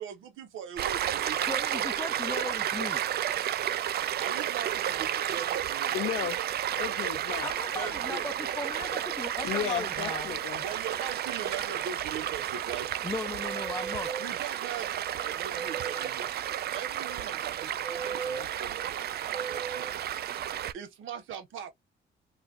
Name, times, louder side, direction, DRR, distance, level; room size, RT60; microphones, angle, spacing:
voice 1, 0.0-1.9 4.2-6.0 7.7-8.5 10.5-13.0 14.2-16.3 16.7-20.0 20.7-21.7, right 8 dB, 80° right, 1.0 m, -41 dB
Stream, 0.8-20.7, right 11 dB, 55° right, 0.4 m, -32 dB
voice 2, 1.5-3.0 7.4-10.3 13.0-14.1, left 3 dB, 15° left, 0.5 m, -37 dB
voice 3, 5.9-6.4 6.7-7.5 9.4-10.6, left 12 dB, 80° left, 0.6 m, -34 dB
sound 1, 13.4-14.3 15.5-16.1 17.8-18.5 19.3-20.0, right 6 dB, 30° right, 0.9 m, -38 dB
3.3 x 2.3 x 2.5 m
cardioid pair, 90°, 20 cm